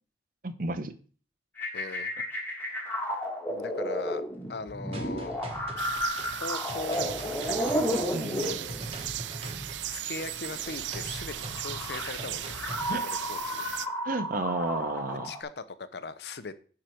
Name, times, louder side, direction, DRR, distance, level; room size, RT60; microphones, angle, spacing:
voice 1, 0.4-1.0 8.1-8.6 12.9-13.2 14.0-15.3, right 2 dB, 50° right, 11 dB, 0.8 m, -32 dB
sound 1, 1.6-9.1 10.5-15.4, equal, 10° left, 1.7 m, -33 dB
voice 2, 1.7-2.1 3.5-4.2 4.5-5.3 6.3-8.0 9.9-12.6 12.9-13.0 13.3-13.6 15.2-16.5, left 3 dB, 65° left, 13 dB, 0.7 m, -39 dB
sound 2, 4.9-12.9, right 1 dB, 35° right, 1.2 m, -42 dB
sound 3, 5.8-13.9, right 13 dB, 85° right, 0.4 m, -37 dB
10.0 x 4.9 x 4.5 m, 0.41 s
head